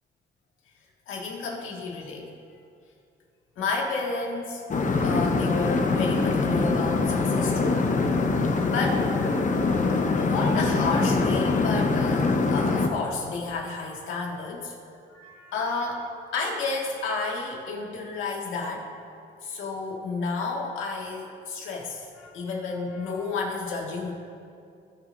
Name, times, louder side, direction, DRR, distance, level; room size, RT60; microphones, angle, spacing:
voice 1, 1.1-2.3 3.6-4.6 5.0-7.9 8.3-9.3 9.9-14.6 15.1-18.9 19.4-24.1, left 3 dB, 85° left, -1 dB, 1.9 m, -31 dB
sound 1, 4.7-12.9, left 3 dB, 40° left, 1.0 m, -23 dB
19.0 x 7.0 x 2.6 m, 2.4 s
cardioid pair, 90°, 20 cm